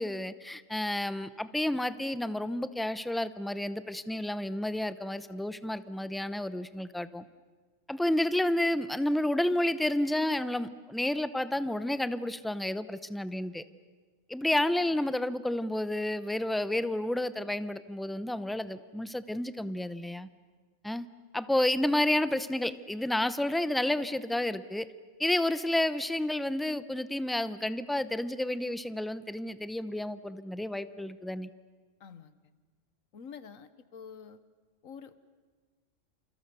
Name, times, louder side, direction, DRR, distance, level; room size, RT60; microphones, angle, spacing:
voice 1, 0.0-7.2 7.9-13.6 14.3-20.3 20.8-21.1 21.3-24.9 25.2-31.5, left 1 dB, ahead, 13 dB, 0.5 m, -30 dB
voice 2, 32.0-32.4 33.1-34.4 34.8-35.1, left 6 dB, 85° left, 14 dB, 1.5 m, -47 dB
28.5 x 28.0 x 6.9 m, 1.4 s
omnidirectional pair, 1.4 m